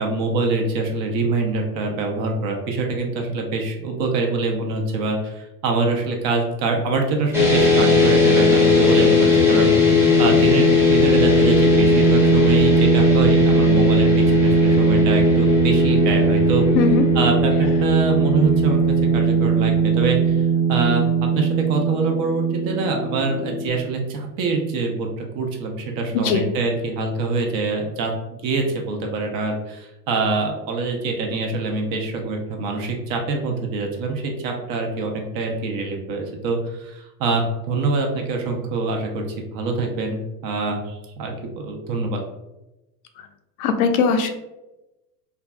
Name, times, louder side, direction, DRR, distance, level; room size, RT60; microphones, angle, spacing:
voice 1, 0.0-9.7 10.2-16.6 17.1-18.8 19.1-20.4 20.7-21.1 21.3-28.1 28.4-39.2 39.5-42.2, right 3 dB, 45° right, 2 dB, 0.6 m, -24 dB
sound 1, 7.3-23.7, equal, 5° right, 0.7 m, -17 dB
voice 2, 16.8-17.1 26.2-26.4 43.6-44.3, left 5 dB, 65° left, 6 dB, 0.5 m, -19 dB
2.5 x 2.2 x 2.3 m, 0.98 s
hypercardioid pair, 95°, 48 cm